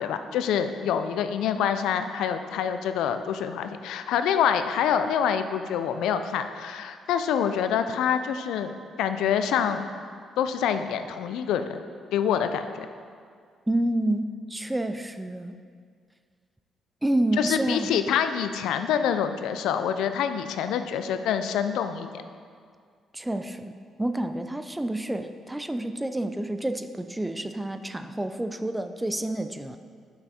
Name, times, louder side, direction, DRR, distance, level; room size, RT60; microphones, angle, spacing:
voice 1, 0.0-8.7 9.0-9.8 10.4-11.8 12.1-12.9 17.4-22.2, left 8 dB, 85° left, 9 dB, 0.4 m, -26 dB
voice 2, 13.7-15.6 17.0-17.9 23.1-29.8, right 1 dB, 10° right, 9 dB, 0.4 m, -29 dB
6.7 x 5.7 x 4.2 m, 2.1 s
cardioid pair, 90°, 0 cm